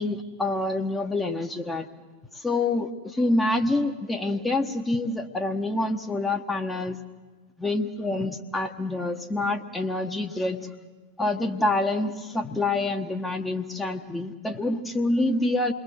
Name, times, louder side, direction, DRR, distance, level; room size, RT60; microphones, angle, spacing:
voice 1, 0.0-1.9 2.3-7.0 7.6-10.7 11.2-15.7, left 2 dB, 10° left, 4 dB, 1.5 m, -27 dB
28.5 x 21.0 x 7.3 m, 1.3 s
figure-of-eight pair, 90°, 0 cm